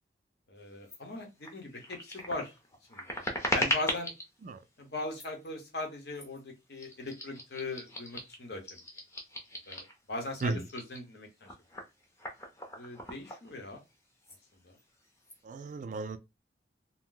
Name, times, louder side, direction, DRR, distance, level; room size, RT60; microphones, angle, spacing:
voice 1, 0.5-2.5 2.9-4.1 4.8-8.6 9.7-11.5 12.8-13.8 14.6-14.7, left 2 dB, 65° left, 0.9 m, -39 dB
sound 1, 0.9-1.0 1.4-4.3 5.1-5.5 6.1-6.4 6.7-10.0 10.3-13.9 14.2-14.4 14.7-15.4, left 1 dB, 15° left, 0.6 m, -38 dB
voice 2, 15.4-16.2, right 3 dB, 45° right, 0.3 m, -34 dB
2.6 x 2.1 x 3.8 m
head